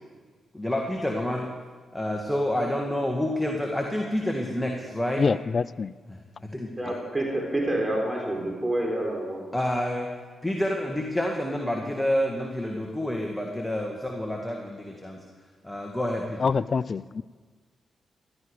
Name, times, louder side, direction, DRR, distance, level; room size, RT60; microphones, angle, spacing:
voice 1, 0.5-1.5 1.9-5.2 6.1-6.9 9.5-10.1 10.4-15.2 15.6-16.4, left 1 dB, 10° left, 1 dB, 1.9 m, -28 dB
voice 2, 5.2-5.9 16.4-17.2, left 5 dB, 50° left, 20 dB, 0.3 m, -25 dB
voice 3, 6.8-9.5, right 1 dB, 20° right, -1 dB, 3.8 m, -28 dB
15.5 x 12.5 x 5.0 m, 1.5 s
supercardioid pair, 55°, 0 cm